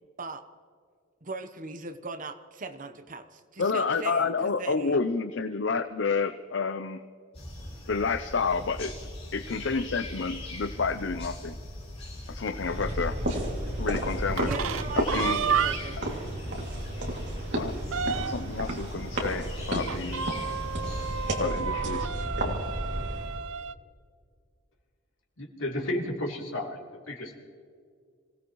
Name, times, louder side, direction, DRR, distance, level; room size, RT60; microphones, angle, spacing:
voice 1, 1.2-5.0 14.4-16.0, right 3 dB, 40° right, 9 dB, 1.0 m, -40 dB
voice 2, 3.6-7.0 7.9-8.9 9.3-11.6 12.3-13.2 13.8-14.5 15.0-15.4 17.6-17.7 18.2-20.3 21.4-22.1 22.4-22.6, left 4 dB, 65° left, 9 dB, 0.6 m, -29 dB
sound 1, 7.3-21.4, left 1 dB, 30° left, 4.5 m, -40 dB
sound 2, 12.5-23.4, right 1 dB, 60° right, 2.7 m, -32 dB
sound 3, 14.2-16.1 16.5-16.6 16.9-17.0 17.4-18.6 19.9-23.7, right 7 dB, 90° right, 0.6 m, -31 dB
voice 3, 25.4-26.8 27.1-27.4, left 1 dB, 80° left, -1 dB, 3.2 m, -32 dB
26.5 x 17.5 x 3.1 m, 2.1 s
head